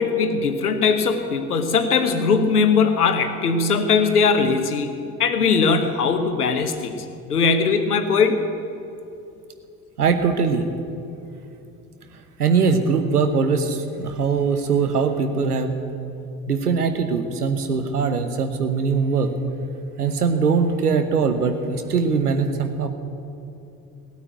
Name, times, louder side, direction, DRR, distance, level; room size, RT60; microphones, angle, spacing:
voice 1, 0.0-4.9 5.2-6.9 7.3-8.4, left 5 dB, 85° left, 8 dB, 1.1 m, -20 dB
voice 2, 10.0-10.7 12.4-15.7 16.5-19.3 20.0-22.9, right 5 dB, 85° right, 8 dB, 1.0 m, -21 dB
17.5 x 8.9 x 9.2 m, 2.7 s
figure-of-eight pair, 50°, 45 cm